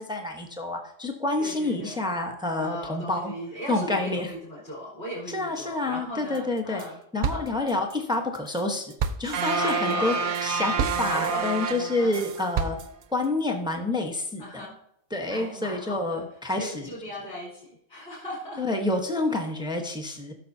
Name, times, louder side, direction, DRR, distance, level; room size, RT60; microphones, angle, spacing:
voice 1, 0.0-3.3 3.7-4.3 5.3-6.8 7.1-8.9 9.2-10.1 10.4-12.8 13.1-14.7 15.1-16.9 18.6-20.3, left 2 dB, 5° right, 3 dB, 0.9 m, -28 dB
voice 2, 1.4-2.0 2.6-7.0 7.3-7.6 9.5-10.3 11.0-11.5 12.0-12.3 14.4-14.8 15.3-16.2 16.5-18.6, equal, 35° left, -7 dB, 3.3 m, -37 dB
sound 1, 6.3-6.9 7.2-13.3, right 6 dB, 60° right, 0.4 m, -33 dB
sound 2, 9.3-12.6, right 5 dB, 85° right, 1.1 m, -28 dB
15.0 x 6.6 x 2.7 m, 0.74 s
omnidirectional pair, 1.4 m